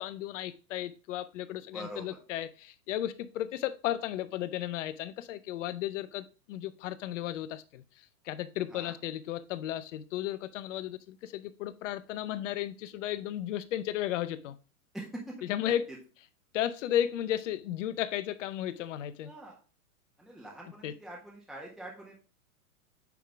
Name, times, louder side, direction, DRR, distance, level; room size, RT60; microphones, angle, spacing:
voice 1, 0.0-14.6 15.4-15.8 16.5-19.3 20.8-20.9, left 12 dB, 55° left, 0.8 m, -34 dB
voice 2, 1.7-2.2 8.7-8.9 14.9-15.7 19.2-19.6 20.2-22.2, right 1 dB, ahead, 1.4 m, -44 dB
9.2 x 3.7 x 3.5 m
hypercardioid pair, 125°, 44 cm